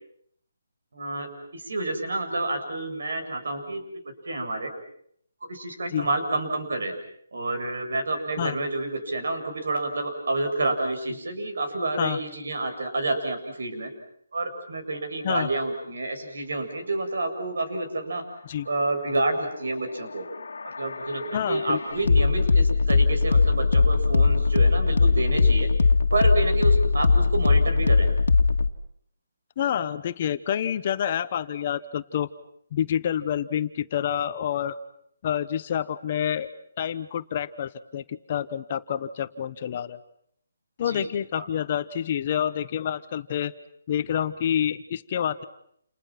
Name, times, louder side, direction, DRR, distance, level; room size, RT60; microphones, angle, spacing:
voice 1, 0.9-4.7 5.4-6.9 7.3-13.9 14.3-18.2 18.7-20.3 20.6-25.7 26.1-28.1 40.9-41.1 41.4-41.5, right 2 dB, 65° right, 5 dB, 7.6 m, -29 dB
sound 1, 20.0-28.7, left 4 dB, 80° left, 1.9 m, -21 dB
voice 2, 21.3-21.8 27.0-27.1 29.6-32.3 32.7-34.8 35.2-36.5 36.8-40.0 40.8-43.5 43.9-45.4, left 9 dB, 30° left, 12 dB, 1.0 m, -28 dB
30.0 x 29.5 x 6.0 m, 0.67 s
hypercardioid pair, 175°, 0 cm